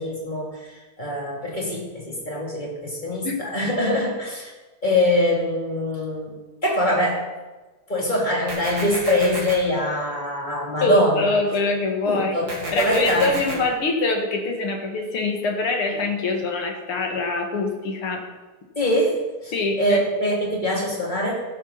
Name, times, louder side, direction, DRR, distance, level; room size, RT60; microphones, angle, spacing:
voice 1, 0.0-4.5 4.8-6.4 6.6-7.3 7.9-11.3 12.1-13.6 18.7-21.4, equal, 20° left, -3 dB, 3.2 m, -23 dB
sound 1, 8.5-9.5 12.5-13.5, right 2 dB, 60° right, 4.2 m, -31 dB
voice 2, 10.8-12.4 12.7-18.3 19.5-20.1, left 3 dB, 80° left, 2 dB, 2.9 m, -24 dB
15.5 x 12.0 x 4.2 m, 1.2 s
omnidirectional pair, 2.3 m